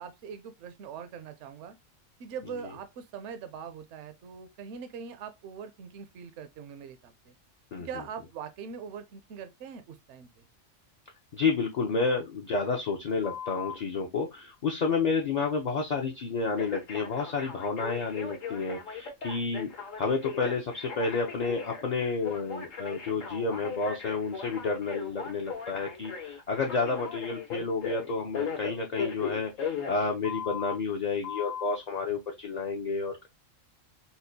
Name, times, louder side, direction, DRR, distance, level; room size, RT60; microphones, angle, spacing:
voice 1, 0.0-1.8 2.2-7.3 7.8-10.4, right 7 dB, 70° right, 0.8 m, -42 dB
voice 2, 11.3-19.7 20.0-33.3, left 4 dB, 50° left, 0.5 m, -30 dB
Telephone, 13.2-13.8 16.6-30.8 31.2-31.8, left 6 dB, 80° left, 1.3 m, -38 dB
4.2 x 2.1 x 2.6 m
omnidirectional pair, 1.3 m